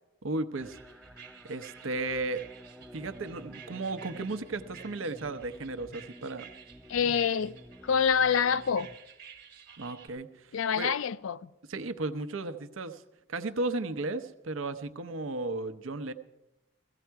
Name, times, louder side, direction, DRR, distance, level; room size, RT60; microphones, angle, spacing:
voice 1, 0.2-0.8 1.4-2.4 2.9-6.4 9.8-10.9 11.7-13.0 13.3-16.1, right 2 dB, 80° right, 0.8 m, -34 dB
sound 1, 0.6-9.0, equal, ahead, 0.4 m, -51 dB
sound 2, 0.6-10.1, right 7 dB, 50° right, 1.3 m, -52 dB
voice 2, 6.9-7.6 7.8-8.9 10.5-11.5, left 7 dB, 80° left, 0.4 m, -26 dB
15.5 x 15.0 x 4.6 m
head